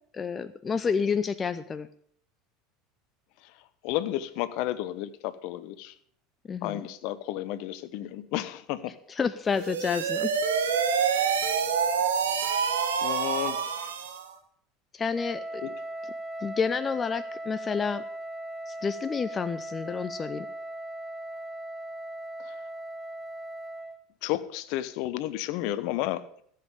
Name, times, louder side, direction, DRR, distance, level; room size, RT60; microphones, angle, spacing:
voice 1, 0.1-1.9 6.5-6.9 9.1-10.3 14.9-15.6 16.4-18.0 18.7-20.5, left 6 dB, 30° left, 13 dB, 0.6 m, -29 dB
voice 2, 3.8-5.9 6.6-8.9 13.0-13.9 15.6-15.7 22.4-22.5 24.2-26.2, left 14 dB, 60° left, 14 dB, 0.9 m, -32 dB
sound 1, 9.5-14.3, right 6 dB, 80° right, 1.6 m, -27 dB
Wind instrument woodwind instrument, 15.1-24.0, right 1 dB, 5° left, 1.3 m, -38 dB
15.0 x 7.6 x 6.7 m, 0.63 s
hypercardioid pair, 80°, 0 cm